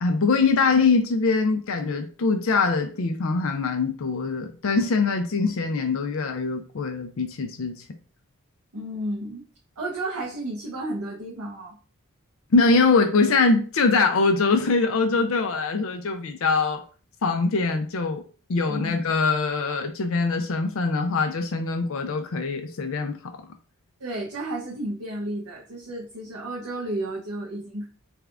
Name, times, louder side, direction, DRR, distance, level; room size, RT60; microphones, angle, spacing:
voice 1, 0.0-7.8 12.5-16.8 17.2-18.2 18.5-23.3, left 4 dB, 65° left, 0.4 m, -23 dB
voice 2, 8.7-9.4 9.8-11.7 18.7-19.0 24.0-27.9, right 1 dB, 90° right, 0.8 m, -32 dB
3.4 x 2.4 x 3.4 m
head